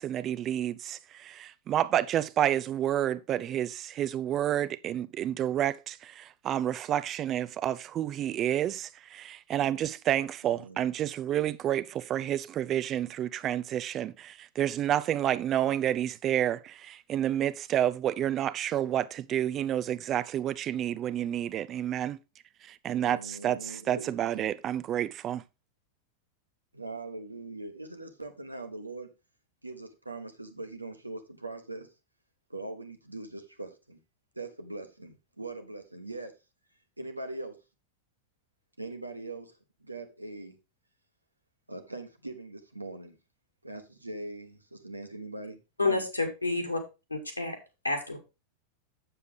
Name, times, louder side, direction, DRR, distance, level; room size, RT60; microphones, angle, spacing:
voice 1, 0.0-22.2 22.6-25.4, right 11 dB, 30° right, 0.5 m, -29 dB
voice 2, 10.5-10.9 23.0-24.5 26.7-29.1 29.6-31.9 32.5-34.0 34.3-36.3 37.0-37.6 38.8-39.5 39.8-40.5 41.7-43.2 43.6-46.0, right 2 dB, 85° right, 1.2 m, -41 dB
voice 3, 45.8-46.8 47.1-47.6 47.8-48.2, left 3 dB, 85° left, 2.1 m, -29 dB
8.0 x 6.8 x 3.7 m
figure-of-eight pair, 90°, 0 cm